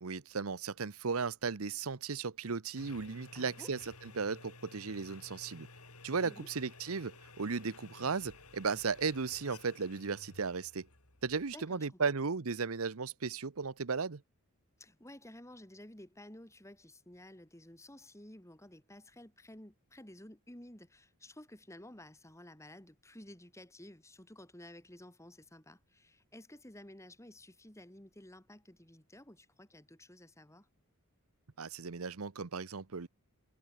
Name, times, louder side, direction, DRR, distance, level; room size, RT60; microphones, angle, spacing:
voice 1, 0.0-5.7 6.0-10.9 11.2-14.2 31.6-33.1, right 5 dB, 75° right, 0.9 m, -36 dB
sound 1, 2.7-11.9, left 3 dB, 85° left, 5.8 m, -55 dB
voice 2, 3.3-3.7 6.2-6.5 11.5-11.9 14.8-30.7, left 1 dB, 15° left, 4.0 m, -53 dB
head